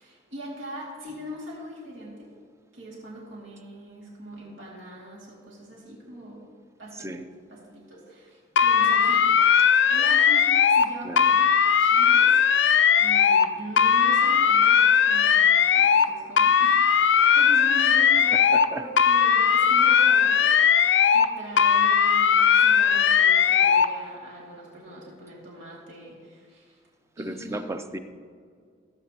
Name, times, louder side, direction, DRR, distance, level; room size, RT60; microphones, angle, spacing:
voice 1, 0.0-2.3 2.7-6.5 6.8-9.3 9.9-11.4 11.8-12.4 13.0-18.4 18.7-20.5 21.1-26.8 27.2-27.6, right 1 dB, 80° right, -5 dB, 2.4 m, -41 dB
sound 1, 8.6-10.9 11.2-13.5 13.8-16.1 16.4-18.7 19.0-21.3 21.6-23.9, left 7 dB, 70° left, 0.5 m, -19 dB
voice 2, 18.5-18.8 27.2-28.0, right 1 dB, 15° right, 8 dB, 0.5 m, -35 dB
17.5 x 8.0 x 2.9 m, 2.1 s
head